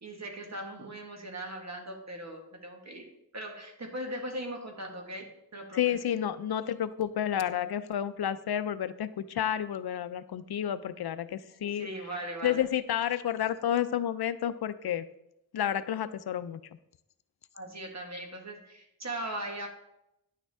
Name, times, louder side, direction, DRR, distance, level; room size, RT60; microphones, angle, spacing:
voice 1, 0.0-3.1 3.3-5.9 11.7-12.6 17.5-19.7, right 1 dB, 45° right, 3 dB, 1.6 m, -39 dB
voice 2, 5.7-11.9 12.4-15.1 15.5-16.6, left 10 dB, 80° left, 14 dB, 0.5 m, -30 dB
10.0 x 6.7 x 3.5 m, 0.83 s
wide cardioid pair, 110°, 38 cm